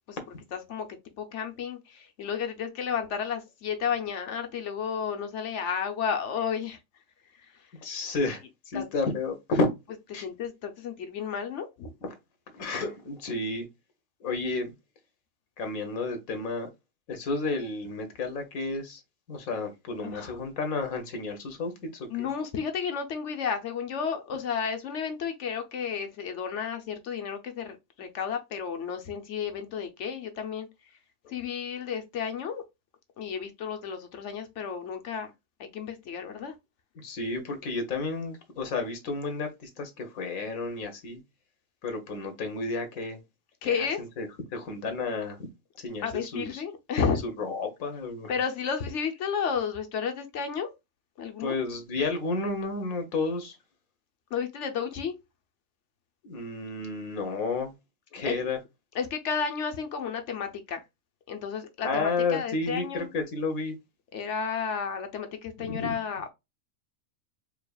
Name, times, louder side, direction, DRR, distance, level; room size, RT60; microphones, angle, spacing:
voice 1, 0.5-0.9 1.2-6.8 8.7-8.9 10.2-11.9 20.0-20.4 22.1-30.7 31.3-32.6 33.2-35.3 35.6-36.6 43.6-44.0 46.0-47.2 48.3-50.7 51.2-51.6 54.3-55.1 58.3-58.4 58.9-60.8 61.3-63.1 64.1-66.3, left 6 dB, 60° left, 0.9 m, -32 dB
voice 2, 7.8-9.7 10.1-10.3 12.0-12.1 12.5-13.6 14.2-14.7 15.6-16.7 17.1-19.0 19.3-22.3 31.2-31.3 37.0-41.2 41.8-43.2 43.6-45.5 45.8-46.6 47.4-48.3 51.4-53.6 56.2-57.7 58.1-58.6 61.8-63.7 65.6-65.9, left 3 dB, 80° left, 1.3 m, -31 dB
4.8 x 2.8 x 2.3 m
omnidirectional pair, 1.5 m